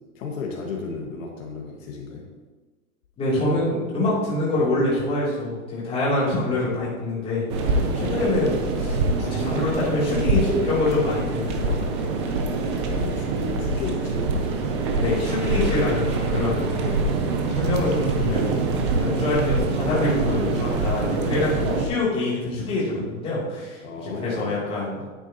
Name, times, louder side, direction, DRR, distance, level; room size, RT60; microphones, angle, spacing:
voice 1, 0.2-2.2 13.0-14.3 19.2-19.3 23.8-24.6, left 4 dB, 65° left, 0 dB, 1.7 m, -34 dB
voice 2, 3.2-12.1 15.0-17.0 17.4-18.6 19.0-25.0, left 2 dB, 15° left, -8 dB, 2.9 m, -25 dB
sound 1, 7.5-21.9, right 3 dB, 20° right, 0.5 m, -25 dB
9.9 x 9.0 x 2.9 m, 1.3 s
hypercardioid pair, 160°, 43 cm